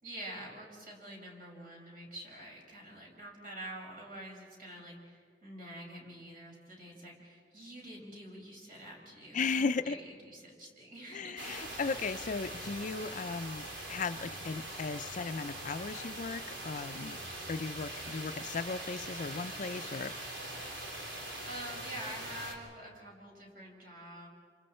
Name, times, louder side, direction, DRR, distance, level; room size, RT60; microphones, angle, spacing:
voice 1, 0.0-11.7 21.4-24.3, right 1 dB, 50° right, -1 dB, 5.9 m, -47 dB
voice 2, 9.3-10.0 11.1-17.2 17.5-20.1, left 4 dB, 45° left, 12 dB, 0.5 m, -36 dB
sound 1, 11.4-22.5, right 1 dB, 90° right, 3.4 m, -42 dB
28.5 x 26.5 x 4.4 m, 2.2 s
head